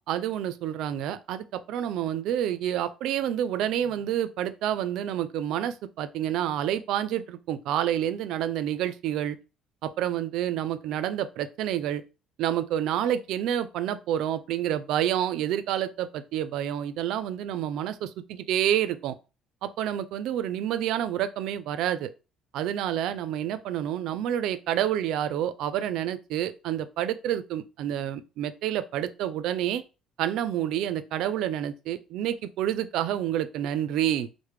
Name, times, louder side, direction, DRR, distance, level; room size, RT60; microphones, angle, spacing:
voice 1, 0.0-9.4 9.8-12.0 12.4-19.2 19.6-22.1 22.5-29.8 30.2-34.3, right 11 dB, 65° right, 0.3 m, -28 dB
4.7 x 2.1 x 3.2 m
cardioid pair, 170°, 0 cm